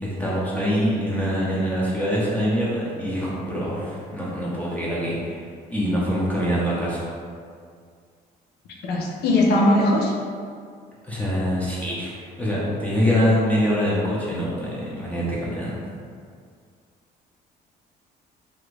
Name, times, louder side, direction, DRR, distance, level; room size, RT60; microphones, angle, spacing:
voice 1, 0.0-5.4 5.7-7.0 11.1-15.8, equal, 10° left, -7 dB, 0.7 m, -24 dB
voice 2, 8.8-10.1, left 1 dB, 75° left, -2 dB, 0.7 m, -19 dB
2.9 x 2.6 x 3.3 m, 2.1 s
cardioid pair, 110°, 17 cm